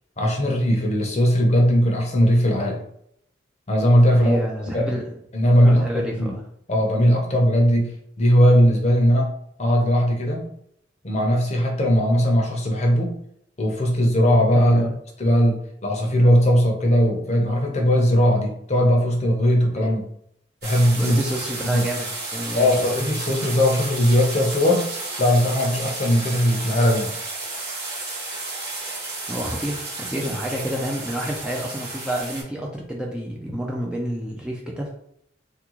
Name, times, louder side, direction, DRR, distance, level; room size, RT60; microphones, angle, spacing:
voice 1, 0.2-2.8 3.7-4.4 4.7-4.9 5.3-6.3 6.7-7.9 8.2-9.3 9.6-10.5 11.0-13.2 13.6-14.9 15.2-20.0 20.6-21.2 21.6-21.9 22.5-24.9 25.2-27.1, equal, 35° left, 1 dB, 0.7 m, -19 dB
voice 2, 4.1-5.1 5.6-6.4 14.5-14.9 19.7-19.8 20.9-22.9 29.3-34.9, equal, 5° right, -2 dB, 0.4 m, -29 dB
sound 1, 20.6-32.4, right 2 dB, 60° right, 1.5 m, -32 dB
3.6 x 2.3 x 2.9 m, 0.71 s
head